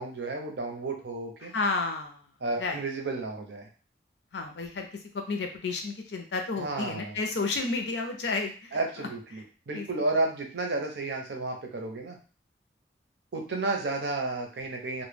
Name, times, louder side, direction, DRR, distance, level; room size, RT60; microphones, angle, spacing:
voice 1, 0.0-1.5 2.4-3.7 6.6-7.2 8.7-12.2 13.3-15.0, right 2 dB, 70° right, 2 dB, 0.6 m, -32 dB
voice 2, 1.4-2.3 2.6-2.8 4.3-9.1 9.3-9.4 9.7-9.9 10.2-10.3, left 3 dB, 75° left, 4 dB, 0.5 m, -32 dB
2.1 x 2.1 x 3.3 m, 0.37 s
head